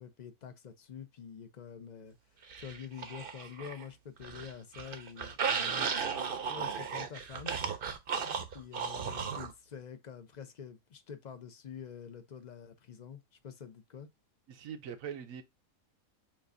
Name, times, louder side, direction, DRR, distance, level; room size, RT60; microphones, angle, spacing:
voice 1, 0.0-2.2 2.6-7.6 8.1-14.1, left 7 dB, 40° left, 0.7 m, -47 dB
sound 1, 2.5-3.8 4.2-9.5, right 6 dB, 50° right, 0.8 m, -35 dB
voice 2, 14.5-15.4, right 8 dB, 85° right, 1.2 m, -42 dB
7.3 x 2.5 x 2.5 m
omnidirectional pair, 1.4 m